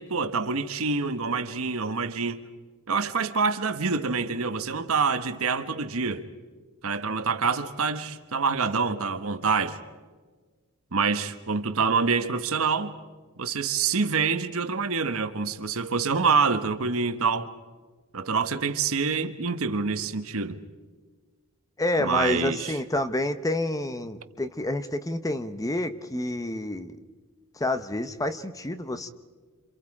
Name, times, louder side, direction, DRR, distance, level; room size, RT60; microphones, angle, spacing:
voice 1, 0.0-2.4 2.9-6.3 6.8-9.8 10.9-12.9 13.4-17.5 18.1-20.6 22.0-22.7, right 5 dB, 65° right, 1.3 m, -26 dB
voice 2, 21.8-26.9 27.6-29.1, left 1 dB, 15° left, 0.8 m, -28 dB
28.0 x 27.5 x 4.9 m
head